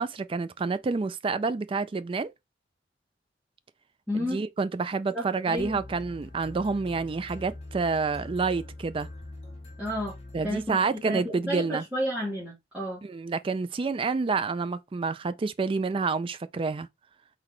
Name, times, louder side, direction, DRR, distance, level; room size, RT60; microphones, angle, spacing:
voice 1, 0.0-2.3 4.1-9.1 10.3-11.8 13.0-16.9, right 4 dB, 30° right, 0.3 m, -28 dB
voice 2, 4.1-4.4 5.1-5.8 9.8-10.1 10.4-13.0, equal, 10° right, 2.1 m, -32 dB
sound 1, 5.6-11.3, left 2 dB, 35° left, 1.6 m, -44 dB
4.3 x 4.0 x 3.1 m
head